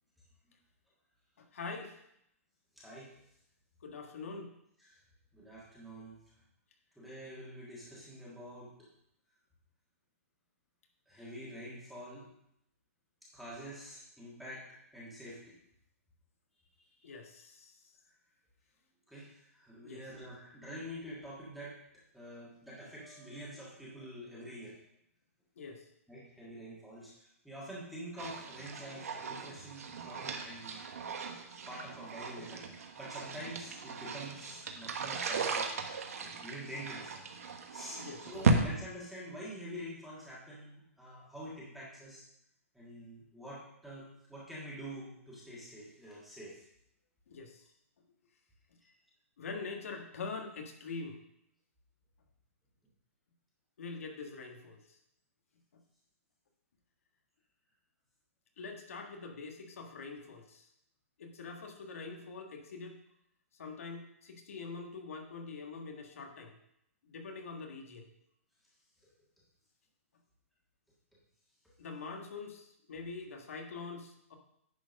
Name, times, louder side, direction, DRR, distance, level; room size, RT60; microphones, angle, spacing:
voice 1, 1.5-2.0 3.8-4.5 17.0-17.8 19.8-20.0 25.6-25.9 38.0-38.2 47.3-47.6 49.4-51.2 53.8-54.8 58.6-60.7 61.2-63.0 63.6-66.6 67.1-68.1 71.8-74.3, left 4 dB, 65° left, 3 dB, 1.6 m, -44 dB
voice 2, 2.7-3.1 4.8-5.0 5.3-6.2 6.9-8.7 11.1-12.3 13.3-15.5 17.0-17.1 19.1-21.7 22.1-24.8 26.1-30.8 31.7-37.2 37.6-42.2 42.7-46.6 48.8-48.9, equal, ahead, -8 dB, 1.6 m, -47 dB
sound 1, 28.2-38.6, right 4 dB, 75° right, 1.3 m, -36 dB
10.0 x 4.5 x 5.3 m, 0.77 s
hypercardioid pair, 175°, 8 cm